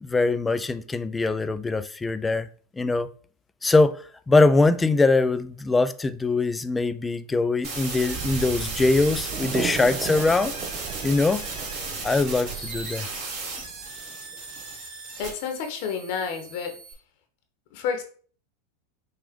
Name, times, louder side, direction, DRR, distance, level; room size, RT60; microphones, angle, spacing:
voice 1, 0.0-2.5 2.8-3.1 3.6-10.5 11.0-11.5 12.0-13.1, left 3 dB, 10° left, 0.3 m, -22 dB
sound 1, 7.6-16.9, right 4 dB, 50° right, 2.4 m, -35 dB
sound 2, 8.0-14.7, right 7 dB, 35° right, 0.5 m, -36 dB
voice 2, 15.2-16.7 17.7-18.0, left 6 dB, 60° left, 1.0 m, -30 dB
5.8 x 2.4 x 3.6 m
supercardioid pair, 125°, 0 cm